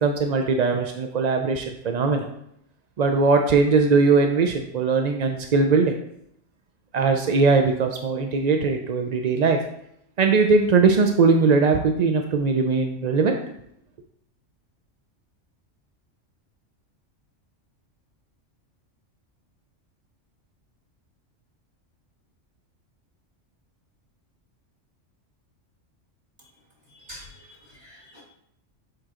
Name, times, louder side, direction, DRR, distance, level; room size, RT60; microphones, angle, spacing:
voice 1, 0.0-2.3 3.0-5.9 6.9-9.6 10.2-13.4, right 4 dB, 60° right, 4 dB, 0.4 m, -20 dB
voice 2, 27.1-28.2, left 1 dB, 20° right, -4 dB, 2.0 m, -45 dB
7.7 x 4.6 x 3.7 m, 0.74 s
omnidirectional pair, 1.3 m